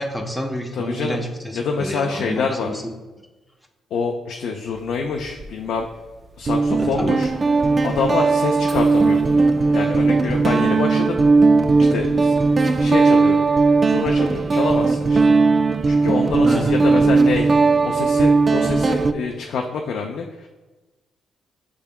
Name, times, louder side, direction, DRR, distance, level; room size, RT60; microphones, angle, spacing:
voice 1, 0.0-2.9 6.8-7.1 16.4-17.1, equal, ahead, 1 dB, 0.7 m, -29 dB
voice 2, 0.7-1.2 1.5-2.7 3.9-5.9 6.4-7.3 7.8-9.5 9.7-11.2 11.8-13.4 13.8-15.3 15.9-17.5 17.8-20.5, left 5 dB, 70° left, 2 dB, 0.4 m, -26 dB
Guitar, 5.2-5.5 6.5-19.1, right 4 dB, 40° right, 0.3 m, -17 dB
6.6 x 3.5 x 2.2 m, 1.2 s
supercardioid pair, 55°, 0 cm